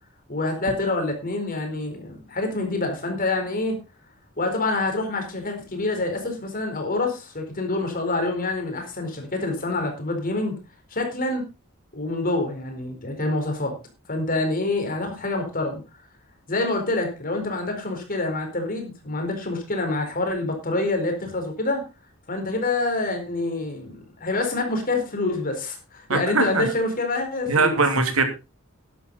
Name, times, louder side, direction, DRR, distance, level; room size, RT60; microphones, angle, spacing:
voice 1, 0.3-3.8 4.4-10.6 10.9-11.4 11.9-13.7 14.1-15.8 16.5-21.8 22.3-27.8, left 2 dB, 40° left, 4.3 m, -26 dB
voice 2, 26.1-26.7 27.5-28.2, right 3 dB, 75° right, 2.8 m, -21 dB
12.5 x 11.0 x 4.0 m
head